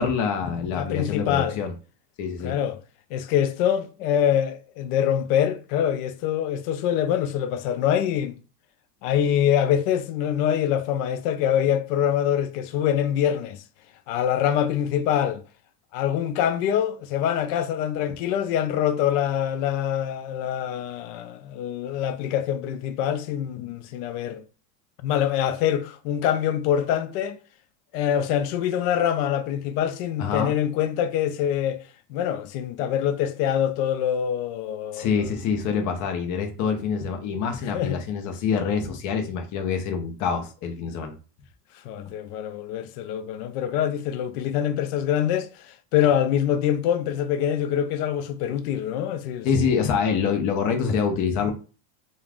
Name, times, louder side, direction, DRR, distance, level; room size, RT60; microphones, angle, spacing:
voice 1, 0.0-1.7 2.2-2.6 30.2-30.5 34.9-41.1 49.4-51.5, left 6 dB, 40° left, 0.7 m, -26 dB
voice 2, 0.7-1.6 2.4-2.8 3.1-8.4 9.0-13.6 14.1-15.4 15.9-24.4 25.0-27.4 27.9-31.8 32.1-35.3 37.7-38.0 41.8-49.8, left 10 dB, 75° left, 0.6 m, -25 dB
2.4 x 2.3 x 3.3 m
supercardioid pair, 125°, 47 cm